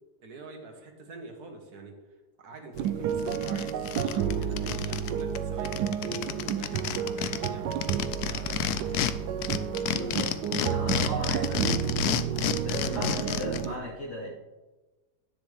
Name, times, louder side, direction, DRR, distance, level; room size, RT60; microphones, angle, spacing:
voice 1, 0.2-2.0 2.4-7.9 8.2-9.1 11.5-12.0, right 3 dB, 70° right, 3 dB, 1.9 m, -45 dB
sound 1, 2.7-13.8, right 8 dB, 85° right, 1.2 m, -31 dB
sound 2, 2.8-2.9 3.2-5.1 5.3-5.4 5.6-9.1 9.4-13.6, left 11 dB, 75° left, 1.1 m, -30 dB
voice 2, 9.9-11.6 12.0-12.1 12.6-14.3, left 1 dB, 40° left, -8 dB, 4.0 m, -36 dB
10.5 x 9.6 x 3.4 m, 1.2 s
omnidirectional pair, 1.7 m